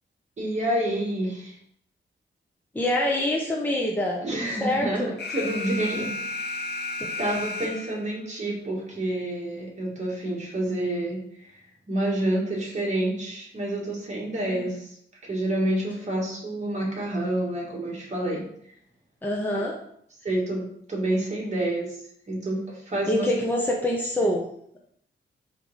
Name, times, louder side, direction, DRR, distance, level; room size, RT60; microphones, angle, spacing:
voice 1, 0.4-1.6 4.2-6.3 7.2-11.2 11.9-15.0 15.2-18.5 19.5-19.6 20.2-21.9 22.3-22.6 22.9-23.3 24.2-24.3, right 1 dB, 35° right, -4 dB, 2.1 m, -28 dB
voice 2, 2.7-5.1 7.0-7.1 7.6-7.7 14.4-14.7 19.2-19.8 23.1-24.5, left 1 dB, 10° left, -1 dB, 0.7 m, -26 dB
Alarm, 5.2-8.2, left 2 dB, 60° left, 0.8 m, -33 dB
4.8 x 3.6 x 5.4 m, 0.67 s
wide cardioid pair, 155°, 20 cm